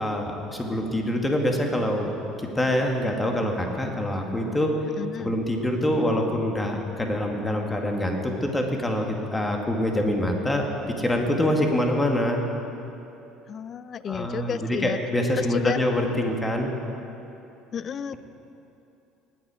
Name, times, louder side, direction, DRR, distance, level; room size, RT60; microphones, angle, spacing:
voice 1, 0.0-2.1 2.5-4.8 5.2-10.7 11.0-12.4 14.1-16.7, left 1 dB, 15° left, 2 dB, 2.2 m, -25 dB
voice 2, 5.0-5.3 13.5-15.0 15.3-15.8 17.7-18.1, left 7 dB, 45° left, 16 dB, 0.4 m, -31 dB
19.0 x 8.5 x 5.0 m, 3.0 s
hypercardioid pair, 60°, 0 cm